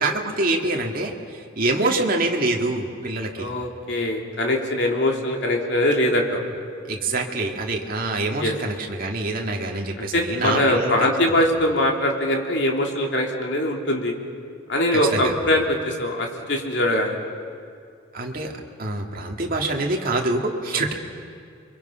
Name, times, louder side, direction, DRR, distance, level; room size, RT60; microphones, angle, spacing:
voice 1, 0.0-3.5 6.9-10.9 15.1-15.3 18.1-18.5 18.8-20.9, right 2 dB, 45° right, 1 dB, 2.3 m, -25 dB
voice 2, 3.4-6.4 8.4-8.5 10.0-14.1 14.7-17.3 20.7-20.9, left 1 dB, 60° left, 1 dB, 3.1 m, -22 dB
30.0 x 23.5 x 5.8 m, 2.3 s
head